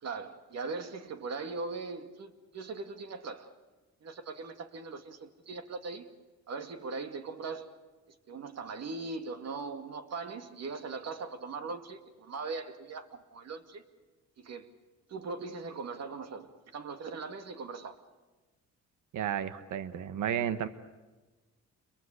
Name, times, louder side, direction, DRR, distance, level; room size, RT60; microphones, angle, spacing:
voice 1, 0.0-3.5 4.0-6.1 6.5-7.7 8.3-13.8 14.4-14.7 15.1-18.0, right 4 dB, 60° right, 2.4 m, -40 dB
voice 2, 19.1-20.7, right 9 dB, 80° right, 1.4 m, -32 dB
29.0 x 23.0 x 6.8 m
cardioid pair, 90°, 30 cm